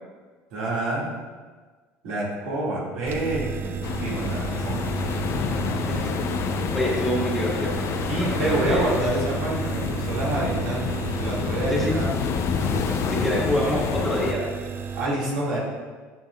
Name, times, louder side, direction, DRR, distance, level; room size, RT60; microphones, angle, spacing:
voice 1, 0.5-1.1 2.0-5.7 8.1-12.1 12.6-13.8 14.9-15.6, right 2 dB, 80° right, -5 dB, 2.0 m, -28 dB
sound 1, 3.1-15.1, right 6 dB, 40° right, 0.6 m, -32 dB
sound 2, 3.8-14.3, left 7 dB, 55° left, 0.5 m, -28 dB
voice 2, 6.7-7.8 8.2-8.8 11.7-12.0 13.1-14.4, equal, ahead, -4 dB, 1.7 m, -26 dB
10.0 x 5.2 x 2.3 m, 1.4 s
supercardioid pair, 95°, 6 cm